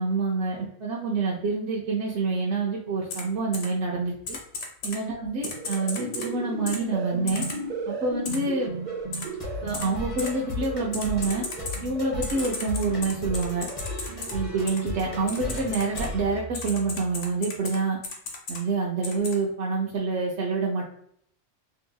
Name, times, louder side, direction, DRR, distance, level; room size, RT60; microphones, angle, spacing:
voice 1, 0.0-4.4 4.8-7.5 7.9-8.7 9.6-11.5 11.8-13.7 14.3-18.0 18.5-20.8, right 3 dB, 75° right, -3 dB, 0.9 m, -27 dB
Typing, 3.1-3.2 3.5-3.7 4.3-5.0 5.4-6.3 6.7-6.8 7.3-7.6 8.2-8.4 9.1-9.2 9.7-9.9 10.2-10.3 10.9-11.8 12.2-14.3 14.7-14.8 15.3-16.1 16.5-17.8 18.0-18.6 19.0-19.3, left 3 dB, 80° left, 1.1 m, -34 dB
sound 1, 5.4-15.9, right 4 dB, 50° right, 0.5 m, -36 dB
sound 2, 8.6-17.2, left 2 dB, 30° left, 0.9 m, -37 dB
3.8 x 2.7 x 2.2 m, 0.67 s
omnidirectional pair, 1.2 m